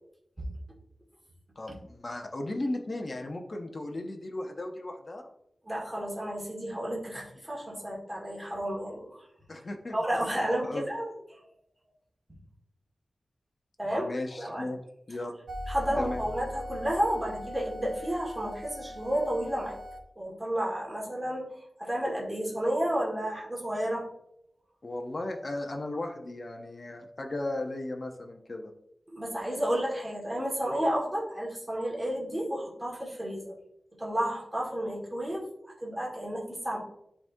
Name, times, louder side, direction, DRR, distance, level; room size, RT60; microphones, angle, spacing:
voice 1, 1.6-5.3 9.5-10.0 10.4-10.9 13.8-14.8 15.1-15.3 16.0-16.2 24.8-28.7, left 2 dB, 40° left, 3 dB, 0.7 m, -36 dB
voice 2, 5.7-9.2 9.9-11.1 13.8-14.7 15.7-19.8 20.2-21.5 21.8-24.1 29.1-33.6 34.0-36.8, equal, 15° right, -4 dB, 1.7 m, -31 dB
sound 1, 15.5-20.0, left 1 dB, 90° right, 0.9 m, -40 dB
9.9 x 3.6 x 2.6 m, 0.76 s
wide cardioid pair, 125°, 0 cm